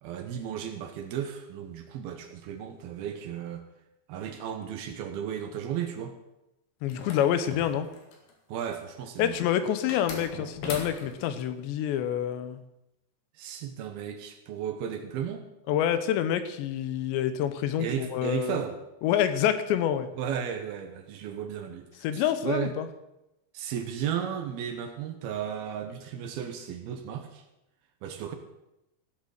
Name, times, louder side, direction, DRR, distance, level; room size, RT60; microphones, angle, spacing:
voice 1, 0.0-3.6 4.1-6.2 8.5-9.3 13.3-15.4 17.8-18.8 20.2-21.9 22.1-22.7 23.5-27.4 28.0-28.3, right 8 dB, 70° right, 6 dB, 2.7 m, -34 dB
voice 2, 6.8-7.9 9.2-12.6 15.7-18.6 19.0-20.1 22.0-22.9, left 10 dB, 85° left, 11 dB, 3.1 m, -27 dB
sound 1, 6.9-8.3 9.9-11.3, left 3 dB, 60° left, 3.5 m, -39 dB
16.0 x 8.0 x 6.5 m, 0.90 s
omnidirectional pair, 5.0 m